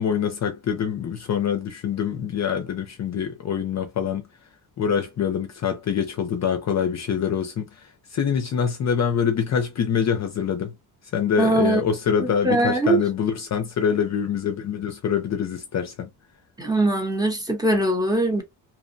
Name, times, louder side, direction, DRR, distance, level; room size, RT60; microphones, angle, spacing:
voice 1, 0.0-4.2 4.8-10.7 11.1-16.1, left 7 dB, 45° left, 0.4 m, -25 dB
voice 2, 11.4-11.8 12.2-13.0 16.6-18.4, right 2 dB, 10° right, 0.7 m, -21 dB
2.8 x 2.1 x 2.5 m
wide cardioid pair, 175°, 39 cm